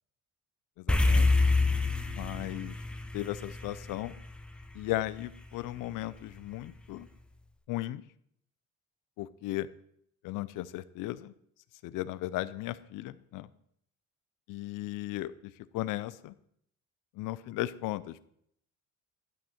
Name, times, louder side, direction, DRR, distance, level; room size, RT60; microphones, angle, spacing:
voice 1, 0.8-1.3 2.1-2.8 3.1-4.2 4.7-7.1 7.7-8.0 9.2-9.7 10.2-11.3 11.8-13.5 14.5-16.3 17.2-18.3, left 16 dB, 90° left, 16 dB, 0.6 m, -36 dB
sound 1, 0.9-5.4, left 3 dB, 5° left, 0.4 m, -27 dB
11.5 x 6.2 x 4.3 m, 0.70 s
cardioid pair, 180°, 31 cm